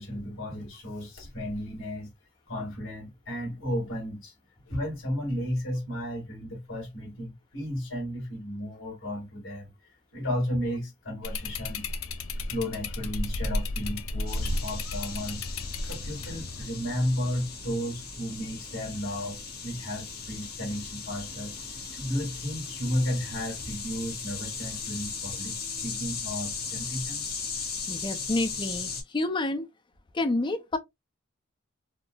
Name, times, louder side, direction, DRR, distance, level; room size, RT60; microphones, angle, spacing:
voice 1, 0.0-2.1 2.5-4.3 4.7-9.7 10.1-11.8 12.5-15.4 15.9-21.5 21.9-27.4, equal, 65° left, 1.9 m, -33 dB
sound 1, 11.2-16.6, left 2 dB, 80° left, 0.5 m, -33 dB
sound 2, 14.3-29.0, left 5 dB, 50° left, 1.1 m, -37 dB
voice 2, 27.9-29.6 30.1-30.8, left 2 dB, 25° left, 0.4 m, -29 dB
4.1 x 2.0 x 2.2 m
head